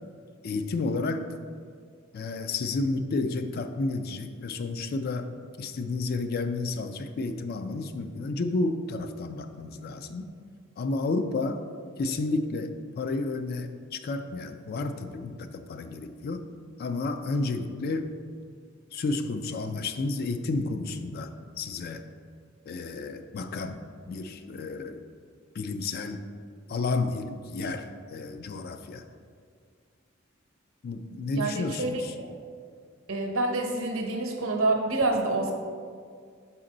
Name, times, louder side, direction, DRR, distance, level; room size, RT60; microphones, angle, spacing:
voice 1, 0.4-1.3 2.1-5.3 5.6-10.3 10.8-11.6 12.0-16.4 16.8-18.1 18.9-21.3 21.6-22.0 22.7-23.8 24.1-25.0 25.5-26.3 26.7-29.0 30.8-32.1, left 3 dB, 50° left, 8 dB, 0.3 m, -31 dB
voice 2, 31.4-32.3 33.1-35.5, right 2 dB, 80° right, 3 dB, 0.8 m, -27 dB
5.9 x 4.2 x 3.8 m, 2.1 s
head